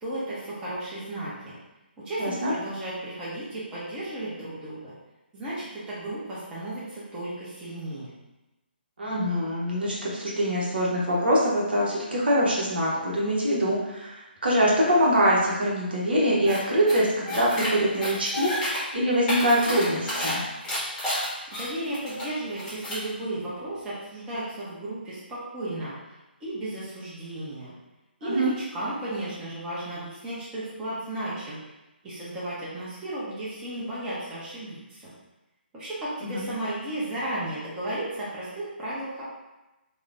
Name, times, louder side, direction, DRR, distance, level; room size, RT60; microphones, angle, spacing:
voice 1, 0.0-1.6 2.0-4.9 5.3-8.1 21.5-25.9 26.4-27.7 28.2-31.6 32.0-35.1 35.7-39.3, right 1 dB, 10° right, -10 dB, 0.6 m, -34 dB
voice 2, 2.2-2.5 9.0-20.4 28.2-28.5 36.2-36.4, equal, 65° right, -4 dB, 0.8 m, -24 dB
sound 1, 16.5-16.6 16.9-17.7 18.0-18.8 19.1-20.3 20.6-22.2 22.6-23.0, left 1 dB, 10° left, 0.9 m, -30 dB
3.1 x 2.1 x 2.5 m, 1.0 s
figure-of-eight pair, 140°, 6 cm